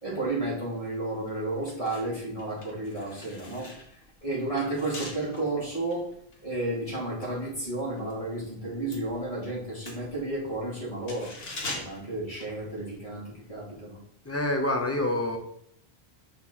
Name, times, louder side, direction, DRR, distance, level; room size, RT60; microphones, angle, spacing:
voice 1, 0.0-3.7 4.2-6.1 6.4-11.3 11.7-14.0, right 2 dB, 35° left, -6 dB, 2.3 m, -32 dB
sound 1, 1.6-8.2 8.5-13.1 13.4-13.6, left 2 dB, 65° left, 1.4 m, -43 dB
voice 2, 14.2-15.4, left 1 dB, 15° left, 3 dB, 0.6 m, -27 dB
5.8 x 3.7 x 4.4 m, 0.72 s
omnidirectional pair, 1.1 m